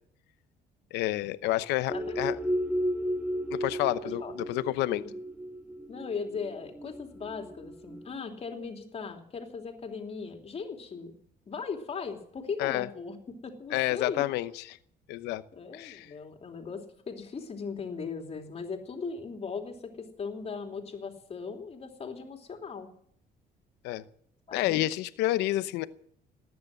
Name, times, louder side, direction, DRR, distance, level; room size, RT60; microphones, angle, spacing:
voice 1, 0.9-2.4 3.5-5.0 12.6-12.9 13.7-14.6 15.1-15.4 15.8-16.1 23.8-24.1 24.5-25.9, left 16 dB, 90° left, 14 dB, 0.8 m, -29 dB
sound 1, 1.9-8.0, equal, 10° right, 1.6 m, -33 dB
voice 2, 4.0-4.3 5.9-11.1 11.5-14.2 15.5-22.9 24.5-24.8, left 5 dB, 35° left, 4 dB, 3.0 m, -38 dB
18.5 x 9.6 x 7.7 m, 0.65 s
cardioid pair, 110°, 17 cm